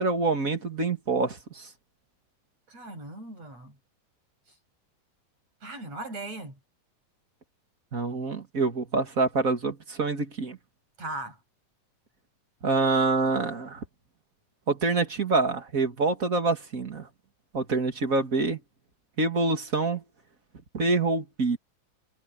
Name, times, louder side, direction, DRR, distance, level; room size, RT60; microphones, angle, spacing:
voice 1, 0.0-1.7 7.9-10.6 12.6-13.8 14.7-17.1 17.5-18.6 19.2-20.0 20.7-21.6, right 3 dB, 30° right, 1.8 m, -26 dB
voice 2, 2.7-3.7 5.6-6.6 11.0-11.4, right 2 dB, 50° right, 9.2 m, -38 dB
omnidirectional pair, 3.8 m